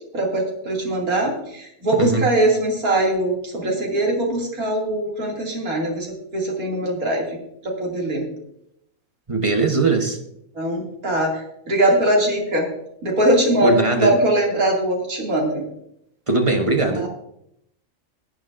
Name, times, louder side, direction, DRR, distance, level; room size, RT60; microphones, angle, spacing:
voice 1, 0.1-7.2 7.6-8.2 10.6-11.3 11.7-12.7 13.0-15.6 17.0-17.1, right 1 dB, 85° right, -2 dB, 3.0 m, -21 dB
voice 2, 9.3-10.2 13.6-14.2 16.3-17.1, right 3 dB, 25° right, 4 dB, 1.0 m, -20 dB
18.0 x 9.1 x 2.6 m, 0.76 s
omnidirectional pair, 1.5 m